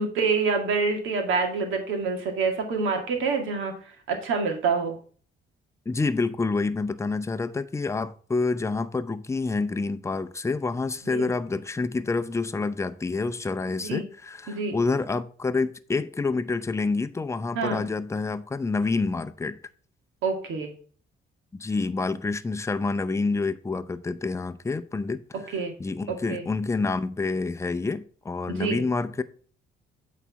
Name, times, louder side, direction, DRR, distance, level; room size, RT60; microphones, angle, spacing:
voice 1, 0.0-3.7 4.1-5.0 11.1-11.3 13.8-14.0 14.5-14.8 17.6-17.8 20.2-20.7 25.5-25.7 26.1-26.4 28.5-28.8, right 4 dB, 80° right, 2.0 m, -26 dB
voice 2, 5.9-19.6 21.5-29.2, left 3 dB, 15° left, 0.6 m, -28 dB
8.3 x 4.1 x 5.6 m
cardioid pair, 90°, 20 cm